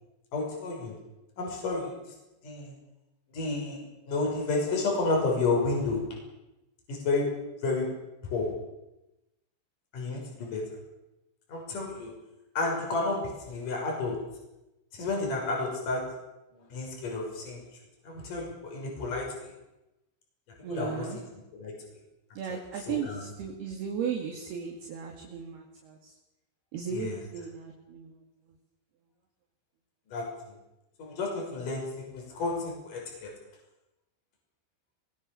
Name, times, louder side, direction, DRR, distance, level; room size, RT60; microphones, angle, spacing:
voice 1, 0.3-0.9 1.4-1.9 2.4-2.7 3.3-3.8 4.1-6.0 6.9-7.3 7.6-7.9 8.3-8.5 9.9-10.6 11.5-12.1 12.6-14.2 14.9-16.0 16.5-17.6 18.1-19.5 20.6-21.1 21.5-21.7 22.5-23.2 26.9-27.2 30.1-30.3 31.0-33.3, left 3 dB, 40° left, 0 dB, 7.3 m, -31 dB
voice 2, 20.6-21.2 22.4-26.0 26.7-28.1, right 7 dB, 60° right, 1 dB, 4.0 m, -36 dB
23.0 x 21.5 x 6.9 m, 0.98 s
omnidirectional pair, 5.6 m